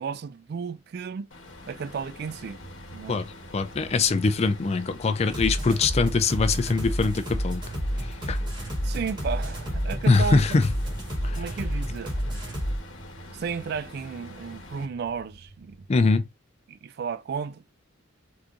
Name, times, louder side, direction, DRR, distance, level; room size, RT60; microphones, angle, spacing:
voice 1, 0.0-1.3 1.7-2.6 2.9-3.2 8.8-10.6 11.3-12.2 13.3-15.8 16.7-17.6, right 6 dB, 55° right, 0.3 m, -33 dB
sound 1, 1.3-14.9, left 2 dB, 75° left, 1.0 m, -46 dB
sound 2, 1.9-16.2, right 3 dB, 80° right, 2.3 m, -50 dB
voice 2, 3.1-7.6 8.3-8.4 10.1-10.6 11.2-11.4 15.9-16.3, left 4 dB, 30° left, 0.4 m, -23 dB
sound 3, 5.2-12.8, equal, 25° right, 1.4 m, -30 dB
3.7 x 2.9 x 2.5 m
head